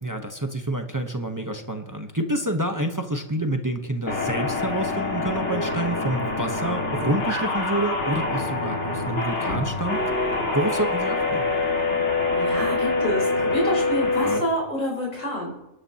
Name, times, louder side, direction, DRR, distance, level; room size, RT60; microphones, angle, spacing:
voice 1, 0.0-10.0 10.5-11.4 14.2-14.4, right 1 dB, 15° right, 4 dB, 0.9 m, -28 dB
sound 1, 4.1-14.4, left 3 dB, 60° left, 2.4 m, -25 dB
voice 2, 12.3-15.5, equal, 90° left, -3 dB, 4.6 m, -27 dB
26.5 x 11.0 x 2.9 m, 0.94 s
omnidirectional pair, 1.3 m